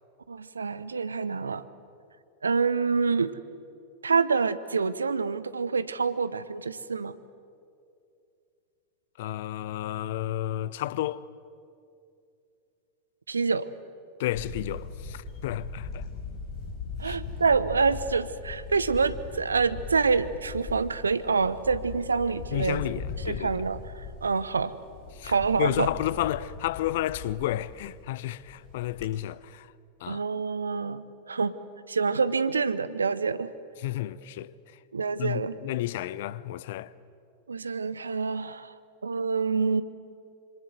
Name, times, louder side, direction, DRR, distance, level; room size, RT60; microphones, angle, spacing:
voice 1, 0.3-1.6 2.4-3.4 4.0-7.2 13.3-13.7 17.0-22.8 23.3-24.7 25.2-25.9 30.1-31.5 31.9-33.5 34.9-35.6 37.5-38.7 39.0-39.8, right 5 dB, 80° right, 0.9 m, -27 dB
voice 2, 9.2-11.2 14.2-16.0 17.0-17.2 22.5-23.5 25.2-25.3 25.6-29.7 30.0-30.2 33.8-34.5 35.2-36.9, left 14 dB, 55° left, 0.7 m, -31 dB
Camera, 14.3-29.1, left 3 dB, 35° left, 5.5 m, -40 dB
26.5 x 25.5 x 7.9 m
figure-of-eight pair, 90°, 0 cm